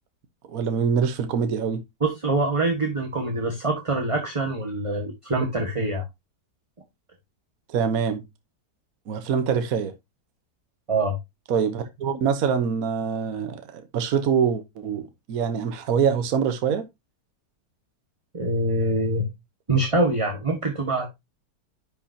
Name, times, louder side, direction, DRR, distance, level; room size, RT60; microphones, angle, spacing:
voice 1, 0.5-1.8 7.7-8.2 9.1-9.9 11.5-16.9, right 7 dB, 60° right, 1.3 m, -24 dB
voice 2, 2.0-6.0 10.9-11.2 18.3-19.3 19.7-21.1, right 2 dB, 20° right, 1.5 m, -24 dB
11.0 x 5.8 x 2.8 m
omnidirectional pair, 1.9 m